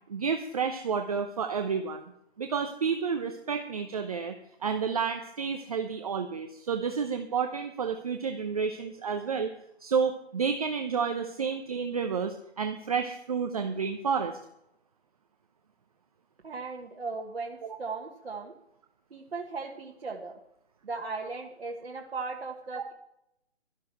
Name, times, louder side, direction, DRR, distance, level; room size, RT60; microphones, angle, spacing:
voice 1, 0.1-2.0 2.4-4.4 4.6-9.5 9.8-14.4 17.6-17.8, right 6 dB, 35° right, 6 dB, 0.7 m, -30 dB
voice 2, 16.4-18.5 19.1-20.4 20.8-22.9, right 4 dB, 60° right, -1 dB, 1.7 m, -37 dB
12.0 x 11.5 x 4.6 m, 0.80 s
figure-of-eight pair, 155°, 34 cm